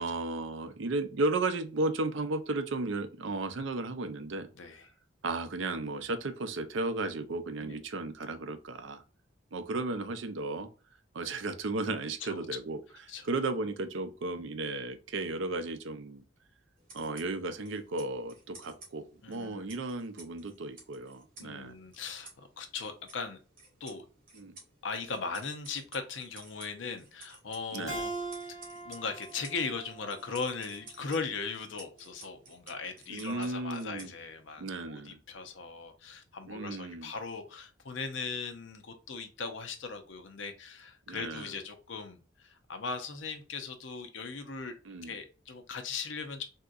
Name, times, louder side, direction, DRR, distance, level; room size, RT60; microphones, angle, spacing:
voice 1, 0.0-4.5 5.2-9.0 9.5-10.7 11.1-12.8 13.2-16.2 16.9-21.8 24.3-24.6 27.7-28.0 33.1-34.1 34.6-35.2 36.5-37.1 41.1-41.5 44.8-45.1, right 2 dB, 70° right, 9 dB, 0.5 m, -34 dB
voice 2, 4.6-4.9 7.6-7.8 12.2-12.5 13.1-13.2 19.2-19.6 21.4-23.4 23.8-24.1 24.8-28.1 28.8-44.7 45.0-46.4, left 4 dB, 70° left, 7 dB, 0.6 m, -39 dB
sound 1, 16.8-34.6, right 3 dB, 45° right, 1.7 m, -55 dB
Keyboard (musical), 27.9-31.1, right 3 dB, 15° right, 1.4 m, -41 dB
3.6 x 2.7 x 2.4 m, 0.34 s
head